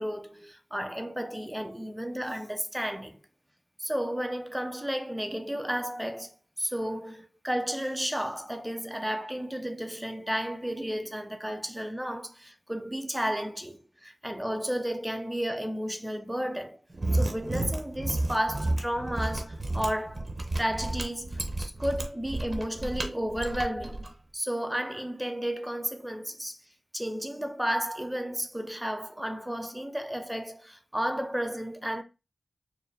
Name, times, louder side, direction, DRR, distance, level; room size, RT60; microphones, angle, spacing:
voice 1, 0.0-3.2 3.8-16.8 17.1-20.3 20.6-26.6 26.9-32.0, equal, 5° right, 0.6 m, -33 dB
Mechanisms, 16.9-24.1, right 2 dB, 35° right, 0.8 m, -31 dB
4.5 x 2.1 x 3.4 m
cardioid pair, 55°, 0 cm